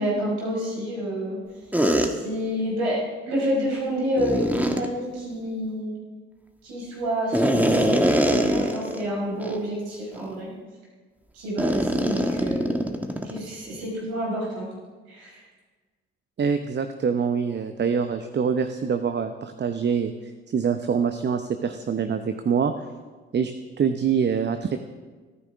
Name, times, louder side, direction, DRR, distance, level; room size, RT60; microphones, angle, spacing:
voice 1, 0.0-1.4 2.0-6.0 6.6-10.5 11.3-12.9 13.2-14.7 15.1-15.4, equal, 75° right, -4 dB, 5.4 m, -29 dB
sound 1, 1.7-2.1 4.2-4.9 7.3-9.0 9.4-9.6 10.1-10.3 11.6-13.4, equal, 5° right, 1.6 m, -22 dB
voice 2, 16.4-22.7 23.3-24.8, right 6 dB, 35° right, 9 dB, 0.8 m, -25 dB
25.5 x 9.8 x 3.6 m, 1.4 s
figure-of-eight pair, 45°, 32 cm